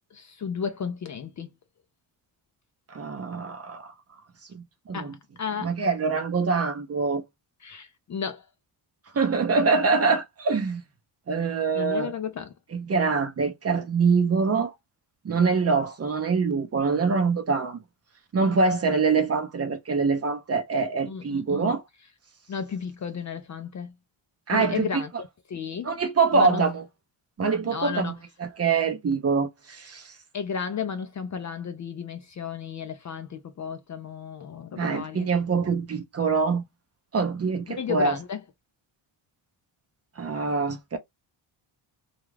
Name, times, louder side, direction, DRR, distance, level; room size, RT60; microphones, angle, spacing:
voice 1, 0.1-1.5 4.9-5.7 7.6-8.4 11.4-12.5 21.1-21.7 22.5-23.9 24.5-26.0 26.3-26.6 27.6-28.1 30.3-35.3 37.7-38.4, left 6 dB, 40° left, 0.4 m, -33 dB
voice 2, 2.9-3.9 4.5-5.1 5.6-7.2 9.1-10.8 11.3-12.1 12.7-14.7 15.2-17.8 18.3-21.8 24.5-25.0 25.8-26.8 27.4-30.1 34.8-36.6 37.1-38.2 40.2-41.0, right 4 dB, 30° right, 0.5 m, -24 dB
2.4 x 2.2 x 3.2 m
cardioid pair, 105°, 50 cm